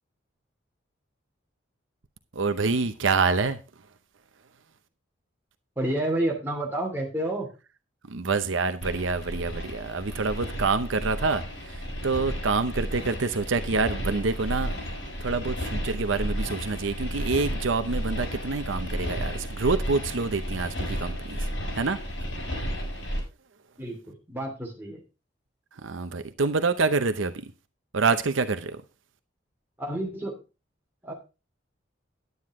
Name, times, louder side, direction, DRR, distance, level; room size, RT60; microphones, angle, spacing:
voice 1, 2.4-3.6 8.1-14.7 15.2-21.4 21.7-22.0 25.8-27.5 27.9-28.8, right 4 dB, 80° right, 0.7 m, -27 dB
voice 2, 5.8-7.5 23.8-25.0 29.8-30.4 31.0-31.1, right 1 dB, 10° right, 2.5 m, -30 dB
sound 1, 8.8-23.2, equal, 90° left, 6.9 m, -33 dB
9.6 x 9.5 x 3.6 m
head